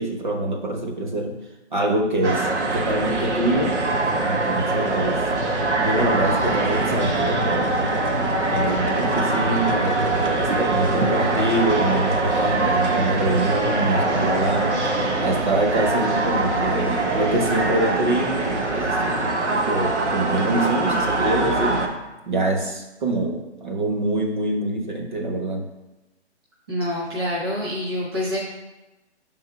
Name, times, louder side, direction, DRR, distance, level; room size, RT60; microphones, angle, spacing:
voice 1, 0.0-1.3 1.7-3.8 4.2-5.2 5.8-8.0 8.5-14.7 15.2-19.1 19.5-21.8 22.3-25.6, right 2 dB, 45° right, 1 dB, 1.0 m, -25 dB
sound 1, 2.2-21.9, right 2 dB, 90° right, 1.2 m, -23 dB
voice 2, 26.7-28.4, left 1 dB, 20° right, -6 dB, 0.8 m, -26 dB
6.0 x 3.7 x 4.5 m, 1.0 s
hypercardioid pair, 170°, 34 cm